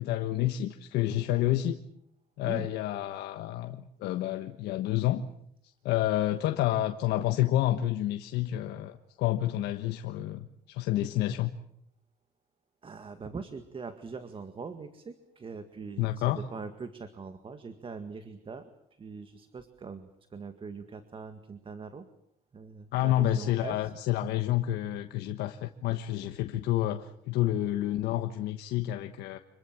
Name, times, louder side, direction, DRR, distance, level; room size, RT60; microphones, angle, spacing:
voice 1, 0.0-1.8 2.4-5.2 5.8-11.5 16.0-16.4 22.9-29.4, left 13 dB, 85° left, 7 dB, 1.3 m, -29 dB
voice 2, 12.8-22.1 22.5-23.9, right 4 dB, 30° right, 9 dB, 1.9 m, -42 dB
26.5 x 23.0 x 7.5 m, 0.71 s
cardioid pair, 110°, 17 cm